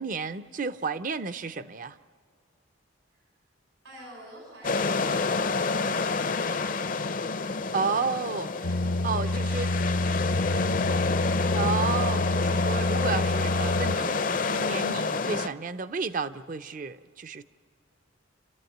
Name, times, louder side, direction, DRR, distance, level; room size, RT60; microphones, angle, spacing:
voice 1, 0.0-2.0 7.7-8.5 9.0-9.7 11.5-17.4, right 5 dB, 40° right, 0.5 m, -32 dB
voice 2, 3.8-6.8 7.4-7.6 8.5-11.0, right 1 dB, 85° right, 5.8 m, -51 dB
sound 1, 4.6-15.5, left 4 dB, 40° left, 0.5 m, -28 dB
sound 2, 8.6-14.0, left 1 dB, 90° left, 1.0 m, -28 dB
28.5 x 14.0 x 7.9 m
head